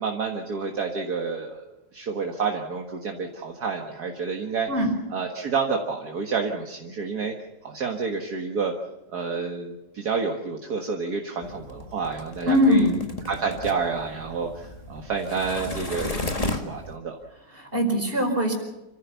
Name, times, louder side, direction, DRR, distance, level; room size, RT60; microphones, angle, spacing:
voice 1, 0.0-4.7 5.1-7.3 7.6-8.7 9.1-12.9 13.2-17.2, right 5 dB, 60° right, 2 dB, 2.1 m, -29 dB
voice 2, 4.7-5.0 12.5-13.0 17.5-18.5, equal, 30° right, 2 dB, 5.0 m, -21 dB
sound 1, 11.4-17.0, left 2 dB, 20° left, 1.7 m, -34 dB
28.0 x 14.5 x 7.0 m, 0.97 s
omnidirectional pair, 1.9 m